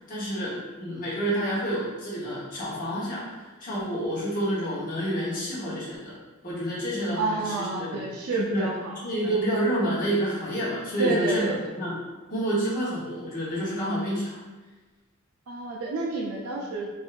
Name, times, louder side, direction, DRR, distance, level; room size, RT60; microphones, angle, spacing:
voice 1, 0.1-6.1 6.4-8.0 8.3-8.7 9.0-12.0 12.3-14.4, right 1 dB, 40° left, -7 dB, 1.0 m, -29 dB
voice 2, 7.1-9.3 11.0-11.6 15.5-16.9, right 3 dB, 80° right, -1 dB, 0.4 m, -29 dB
3.2 x 2.6 x 2.4 m, 1.2 s
head